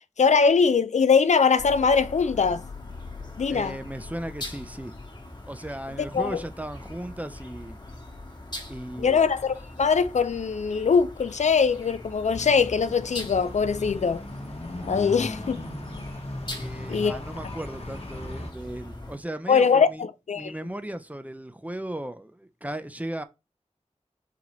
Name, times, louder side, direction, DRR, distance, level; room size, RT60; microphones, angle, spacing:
voice 1, 0.2-2.6 3.4-3.8 6.1-6.4 9.0-14.2 14.9-15.6 16.9-17.2 19.5-20.5, left 5 dB, 75° left, 0.4 m, -22 dB
sound 1, 1.6-19.2, left 2 dB, 35° left, 1.2 m, -41 dB
voice 2, 3.5-4.9 5.5-7.8 8.7-9.3 16.5-20.0 20.4-23.2, right 1 dB, 10° right, 0.5 m, -36 dB
sound 2, 12.3-18.5, left 1 dB, 55° left, 1.0 m, -38 dB
4.4 x 4.0 x 3.0 m
wide cardioid pair, 70°, 12 cm